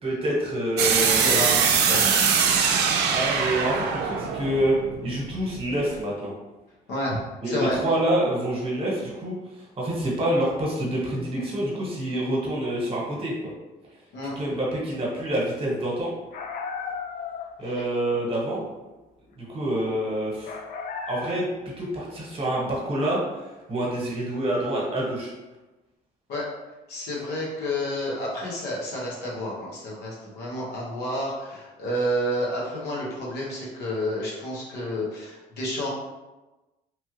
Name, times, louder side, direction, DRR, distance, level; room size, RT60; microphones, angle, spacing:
voice 1, 0.0-1.4 3.0-6.3 7.4-13.5 14.4-16.1 17.6-18.6 19.4-20.6 21.1-25.3, right 1 dB, 35° right, -4 dB, 1.1 m, -27 dB
sound 1, 0.8-5.6, right 6 dB, 80° right, 0.4 m, -22 dB
voice 2, 1.2-2.3 6.9-7.2 7.5-7.8 14.1-14.3 26.3-26.5 26.9-35.9, left 1 dB, 80° left, -4 dB, 1.0 m, -30 dB
sound 2, 16.3-17.7 20.5-21.6, left 5 dB, 55° left, 0.4 m, -35 dB
3.1 x 2.3 x 3.1 m, 1.1 s
cardioid pair, 110°, 17 cm